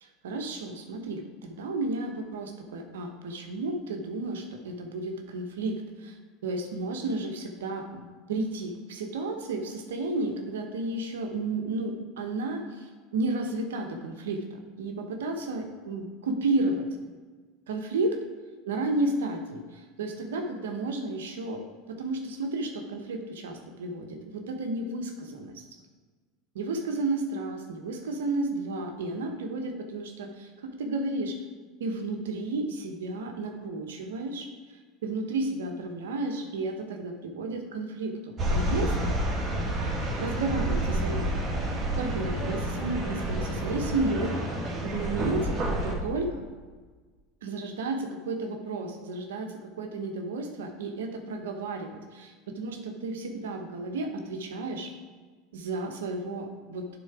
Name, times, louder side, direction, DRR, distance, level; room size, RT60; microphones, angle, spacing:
voice 1, 0.0-6.2 6.4-16.9 17.7-18.2 18.7-25.6 26.5-31.4 31.8-39.1 40.2-41.2 42.0-44.3 44.8-46.4 47.4-54.9 55.5-56.9, right 2 dB, 85° right, 4 dB, 1.0 m, -32 dB
sound 1, 38.4-45.9, right 1 dB, 40° right, 2.1 m, -29 dB
10.5 x 3.8 x 4.8 m, 1.4 s
hypercardioid pair, 90°, 0 cm